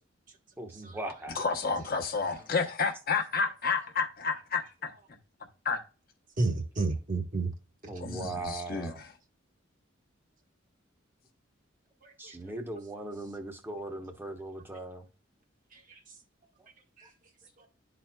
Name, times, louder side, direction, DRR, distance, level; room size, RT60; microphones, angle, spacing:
voice 1, 0.6-1.5 7.9-9.0 12.2-15.1, right 2 dB, 10° right, 0.9 m, -39 dB
voice 2, 1.4-4.9 5.6-5.8 8.0-9.1, left 5 dB, 50° left, 0.9 m, -30 dB
voice 3, 6.4-7.5 12.0-12.3 15.7-16.0 17.0-17.1 17.6-17.7, right 3 dB, 40° right, 1.2 m, -31 dB
11.5 x 4.2 x 2.2 m
head